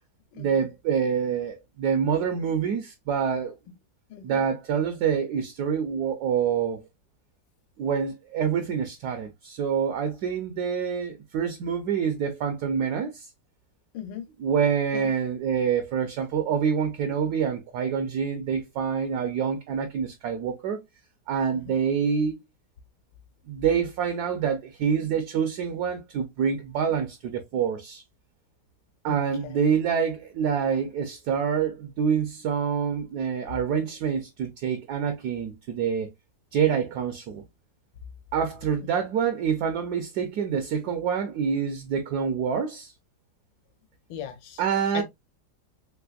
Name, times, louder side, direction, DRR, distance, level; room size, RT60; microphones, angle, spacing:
voice 1, 0.4-3.5 4.2-6.8 7.8-13.3 14.4-20.8 21.3-22.4 23.5-28.0 29.0-36.1 36.5-37.4 38.3-42.9 44.6-45.0, right 7 dB, 70° right, 1.0 m, -26 dB
voice 2, 4.1-4.4 13.9-14.3 14.9-15.1 21.6-21.7 29.1-29.7 44.1-44.6 44.9-45.0, left 9 dB, 80° left, 1.4 m, -38 dB
3.4 x 3.1 x 2.2 m
omnidirectional pair, 2.1 m